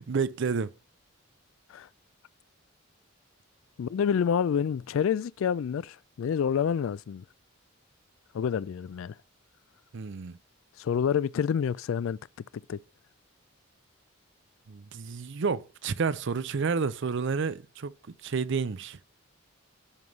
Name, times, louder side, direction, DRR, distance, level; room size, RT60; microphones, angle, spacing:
voice 1, 0.1-0.7 9.9-10.4 14.7-19.0, right 5 dB, 60° right, 0.5 m, -30 dB
voice 2, 3.8-7.2 8.3-9.1 10.8-12.2 12.7-12.8, left 7 dB, 70° left, 0.3 m, -28 dB
12.5 x 5.4 x 3.1 m
head